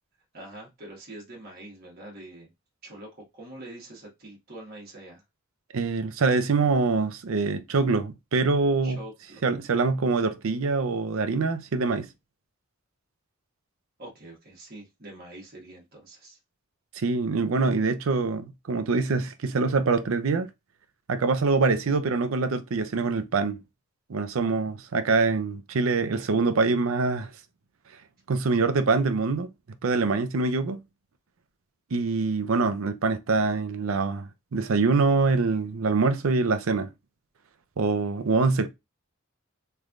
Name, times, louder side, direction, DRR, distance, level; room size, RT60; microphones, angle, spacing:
voice 1, 0.3-2.5 2.8-5.2 8.8-9.4 9.8-9.9 14.0-16.4, right 1 dB, 45° right, 1.4 m, -44 dB
voice 2, 5.7-9.0 9.4-12.1 16.9-20.5 21.1-23.6 24.1-27.3 28.3-29.5 29.8-30.8 31.9-36.9 37.8-38.7, right 4 dB, 75° right, 0.5 m, -24 dB
3.4 x 3.1 x 2.4 m
head